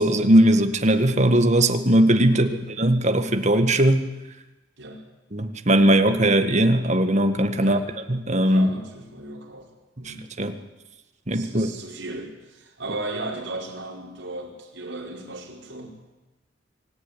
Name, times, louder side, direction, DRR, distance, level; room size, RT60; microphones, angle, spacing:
voice 1, 0.0-2.5 2.8-4.0 5.3-7.8 8.1-8.7 10.1-10.5 11.3-11.7, right 1 dB, 40° right, 7 dB, 1.8 m, -19 dB
voice 2, 2.3-2.6 4.8-5.0 7.6-7.9 8.5-9.7 10.0-10.3 11.3-16.1, right 2 dB, 80° right, -1 dB, 5.2 m, -36 dB
25.5 x 14.0 x 10.0 m, 1.1 s
head